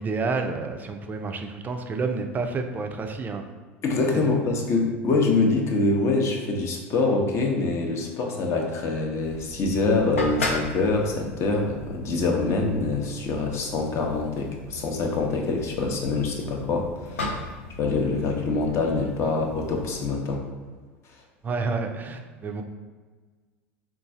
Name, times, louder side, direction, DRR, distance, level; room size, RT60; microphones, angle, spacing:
voice 1, 0.0-3.4 4.1-4.4 21.4-22.6, right 4 dB, 25° right, 5 dB, 0.4 m, -29 dB
voice 2, 3.8-17.5 17.8-20.4, left 3 dB, 45° left, 2 dB, 0.6 m, -25 dB
sound 1, 9.2-20.0, left 2 dB, 85° left, 0.4 m, -37 dB
3.8 x 2.3 x 2.6 m, 1.4 s
hypercardioid pair, 80°, 7 cm